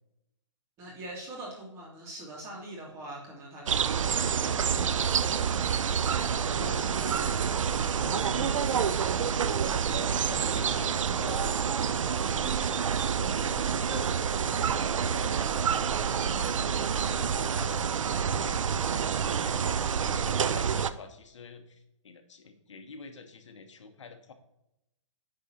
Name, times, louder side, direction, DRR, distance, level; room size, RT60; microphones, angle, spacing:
voice 1, 0.8-5.4 6.8-7.2, right 1 dB, 15° right, -2 dB, 2.0 m, -44 dB
sound 1, 3.7-20.9, right 7 dB, 80° right, 0.5 m, -28 dB
voice 2, 6.0-7.4 7.9-12.9 13.2-17.7 18.1-24.3, left 5 dB, 65° left, 7 dB, 1.1 m, -47 dB
9.9 x 3.7 x 4.4 m, 0.87 s
hypercardioid pair, 165°, 16 cm